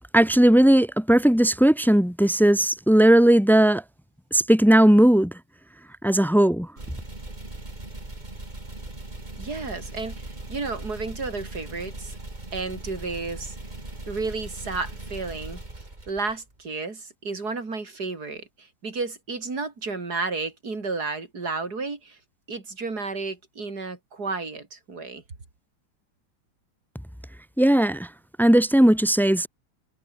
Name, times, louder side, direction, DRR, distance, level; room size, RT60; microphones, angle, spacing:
voice 1, 0.1-3.8 4.3-5.3 6.0-6.7 27.6-28.1 28.4-29.5, right 1 dB, ahead, 0.6 m, -17 dB
sound 1, 6.8-16.6, right 2 dB, 20° right, 3.8 m, -39 dB
voice 2, 9.4-12.2 12.5-13.6 14.1-15.6 16.1-22.2 22.5-25.2, right 3 dB, 50° right, 4.3 m, -32 dB
omnidirectional pair, 2.1 m